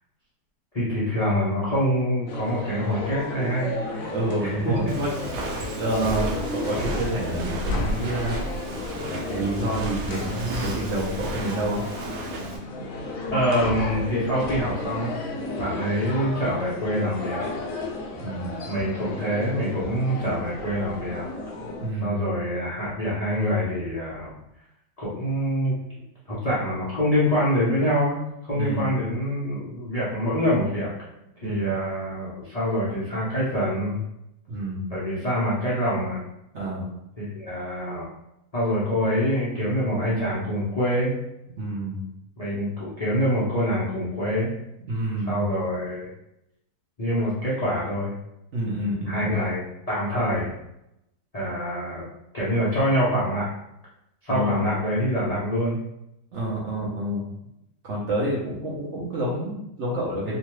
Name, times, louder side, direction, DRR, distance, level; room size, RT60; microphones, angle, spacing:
voice 1, 0.7-4.1 4.4-4.7 13.3-15.2 15.6-17.4 18.7-21.3 22.0-24.3 25.0-25.8 26.3-30.9 31.4-34.0 34.9-36.2 37.2-38.1 38.5-41.1 42.4-44.5 45.2-46.1 47.0-48.1 49.1-50.5 51.3-52.1 52.3-53.5 54.2-55.8, equal, 50° left, -9 dB, 0.4 m, -25 dB
sound 1, 2.3-21.9, left 2 dB, 65° left, 0.9 m, -33 dB
voice 2, 4.1-5.1 5.4-8.4 9.3-11.8 18.2-18.5 21.8-22.2 28.5-28.9 31.4-31.8 34.5-35.0 36.5-36.9 41.6-42.0 44.9-45.4 48.5-49.2 54.3-54.6 56.3-57.2 57.8-60.4, right 1 dB, 60° right, -6 dB, 0.8 m, -28 dB
Walk footsteps, 4.9-12.6, right 1 dB, 85° right, 1.2 m, -32 dB
3.0 x 2.2 x 3.0 m, 0.83 s
omnidirectional pair, 1.8 m